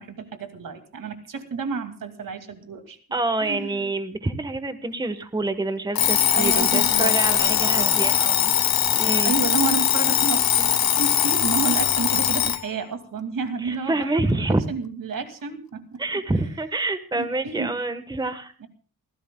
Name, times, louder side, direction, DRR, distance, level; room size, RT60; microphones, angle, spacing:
voice 1, 0.0-3.0 3.4-3.9 6.3-8.5 9.2-16.4 17.1-17.7 18.6-18.7, right 5 dB, 60° right, 7 dB, 2.3 m, -31 dB
voice 2, 3.1-8.1 9.0-9.3 13.6-14.6 16.0-18.7, right 2 dB, 10° right, 10 dB, 1.1 m, -27 dB
Alarm, 5.9-12.6, left 10 dB, 70° left, 1.0 m, -21 dB
28.0 x 15.0 x 2.2 m, 0.41 s
wide cardioid pair, 130°, 37 cm